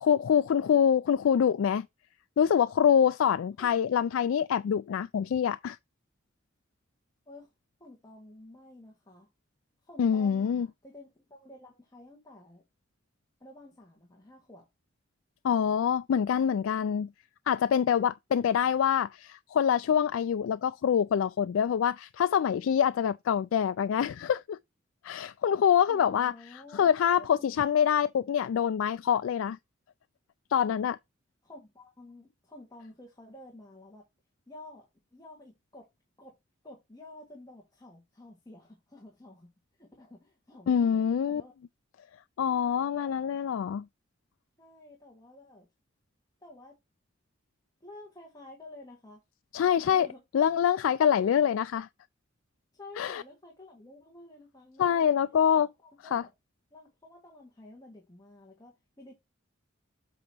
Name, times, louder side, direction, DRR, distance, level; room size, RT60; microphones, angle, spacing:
voice 1, 0.0-1.9 2.4-5.8 10.0-10.7 15.4-17.1 17.5-24.6 25.0-29.6 30.5-31.0 40.7-41.4 42.4-43.9 49.5-50.1 50.3-51.9 53.0-53.2 54.8-55.7 56.1-56.2, left 8 dB, 90° left, 0.3 m, -25 dB
voice 2, 7.8-9.3 9.8-12.6 13.4-14.7 16.3-16.4 25.9-26.9 27.2-27.5 31.4-34.1 34.5-34.9 35.1-35.9 36.2-36.4 36.6-39.5 39.8-41.0 41.3-41.5 42.6-43.1 44.6-45.7 46.4-46.8 47.8-49.2 49.8-50.2 52.7-55.2 55.5-56.3 56.7-59.1, left 1 dB, 20° left, 1.6 m, -51 dB
8.0 x 2.9 x 6.0 m
head